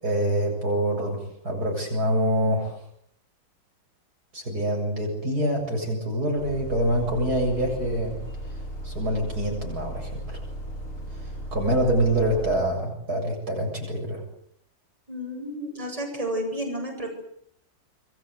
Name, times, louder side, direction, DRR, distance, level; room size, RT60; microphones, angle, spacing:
voice 1, 0.0-2.8 4.3-8.2 8.8-10.4 11.5-14.2, right 1 dB, 45° right, 1 dB, 8.1 m, -25 dB
Bus, 6.4-12.6, equal, 70° left, 6.7 m, -36 dB
voice 2, 15.1-17.1, equal, 15° right, 1 dB, 7.9 m, -31 dB
28.0 x 22.5 x 8.0 m, 0.69 s
omnidirectional pair, 2.4 m